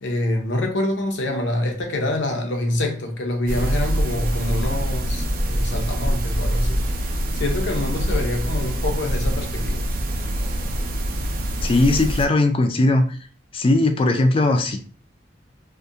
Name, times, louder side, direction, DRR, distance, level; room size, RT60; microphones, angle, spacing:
voice 1, 0.0-9.8, left 1 dB, 80° left, 0.6 m, -26 dB
sound 1, 3.5-12.3, right 1 dB, 50° right, 0.4 m, -25 dB
sound 2, 5.9-9.4 9.7-10.1, equal, 25° right, 0.8 m, -30 dB
voice 2, 11.6-13.2 13.5-14.8, left 2 dB, 30° left, 0.3 m, -18 dB
2.3 x 2.1 x 2.6 m
head